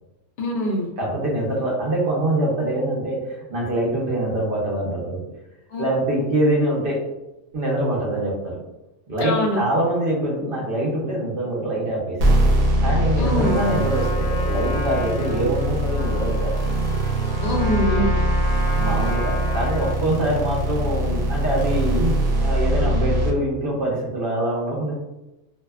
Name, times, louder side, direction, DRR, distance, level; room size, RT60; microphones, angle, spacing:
voice 1, 0.4-0.9 5.7-5.8 9.2-9.6 13.1-13.6 17.4-18.1, equal, 60° left, -1 dB, 0.6 m, -23 dB
voice 2, 1.0-5.2 5.8-7.0 7.5-8.5 9.1-16.5 18.7-24.9, right 1 dB, 50° right, -4 dB, 0.8 m, -24 dB
sound 1, 12.2-23.3, right 1 dB, 70° right, 1.0 m, -22 dB
Trumpet, 13.2-20.1, left 2 dB, 45° left, 1.2 m, -33 dB
2.7 x 2.2 x 2.3 m, 0.94 s
omnidirectional pair, 1.5 m